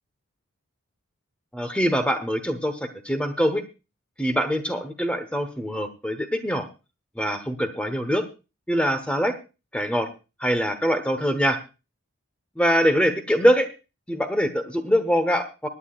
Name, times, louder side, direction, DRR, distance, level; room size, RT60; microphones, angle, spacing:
voice 1, 1.5-2.8 3.0-3.6 4.2-6.7 7.2-8.2 8.7-9.4 9.7-10.1 10.4-11.6 12.6-13.7 14.1-15.7, equal, 5° left, 8 dB, 1.0 m, -23 dB
24.5 x 9.7 x 2.4 m, 0.30 s
head